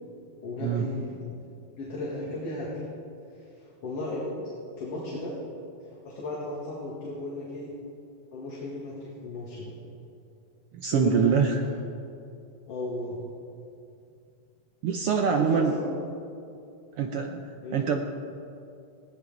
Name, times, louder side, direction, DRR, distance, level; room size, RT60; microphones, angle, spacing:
voice 1, 0.4-1.4 1.8-2.9 3.8-4.5 4.8-5.4 5.8-7.7 8.3-9.7 10.9-11.3 11.6-11.7 12.7-13.2 15.3-15.9 17.6-17.9, left 1 dB, 50° left, -5 dB, 3.1 m, -35 dB
voice 2, 10.7-11.6 14.8-15.8 17.0-17.4 17.7-18.0, right 6 dB, 80° right, 4 dB, 1.3 m, -24 dB
19.5 x 16.5 x 3.9 m, 2.5 s
omnidirectional pair, 3.6 m